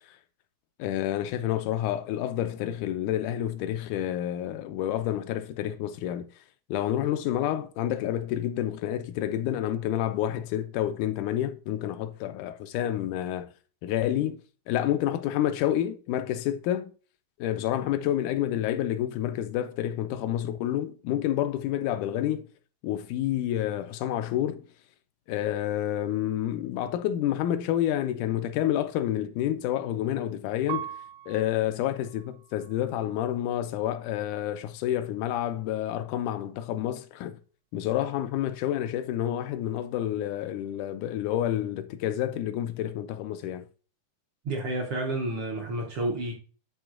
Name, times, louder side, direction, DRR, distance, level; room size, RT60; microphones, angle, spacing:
voice 1, 0.8-6.3 6.7-13.5 13.8-14.4 14.7-16.9 17.4-22.5 22.8-24.6 25.3-30.9 31.3-37.4 37.7-43.7, left 11 dB, 85° left, 2.1 m, -29 dB
Piano, 30.7-33.4 34.1-34.8, right 12 dB, 80° right, 1.5 m, -42 dB
voice 2, 44.4-46.3, right 2 dB, 65° right, 1.4 m, -30 dB
11.0 x 3.8 x 2.4 m
omnidirectional pair, 3.5 m